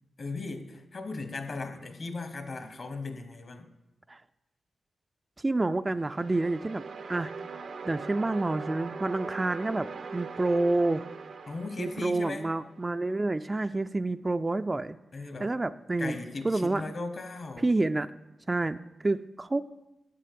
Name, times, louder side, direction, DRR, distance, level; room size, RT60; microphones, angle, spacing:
voice 1, 0.2-3.7 11.5-12.5 15.1-15.6 16.0-17.7, left 3 dB, 55° left, 9 dB, 1.2 m, -37 dB
voice 2, 5.4-6.8 7.1-7.3 7.8-11.0 11.8-15.0 15.4-16.2 16.4-17.0 17.6-18.1 18.5-19.7, right 2 dB, 25° right, 11 dB, 0.3 m, -28 dB
sound 1, 5.9-13.0, right 5 dB, 75° right, 0.6 m, -41 dB
7.8 x 7.6 x 6.8 m, 0.96 s
cardioid pair, 65°, 0 cm